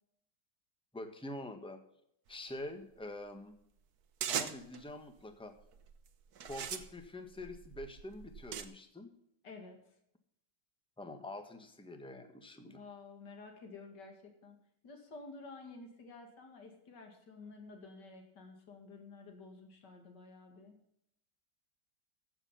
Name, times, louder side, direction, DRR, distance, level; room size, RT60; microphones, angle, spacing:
voice 1, 0.9-1.8 2.3-3.6 4.2-5.5 6.4-9.1 11.0-12.8, left 1 dB, 5° left, 7 dB, 1.3 m, -46 dB
sound 1, 4.2-4.8 5.6-5.9 6.4-8.6, right 8 dB, 65° right, 1.5 m, -39 dB
voice 2, 9.4-9.8 12.7-14.6 14.8-20.8, left 3 dB, 75° left, 3 dB, 2.7 m, -51 dB
14.5 x 7.5 x 5.8 m, 0.74 s
omnidirectional pair, 1.9 m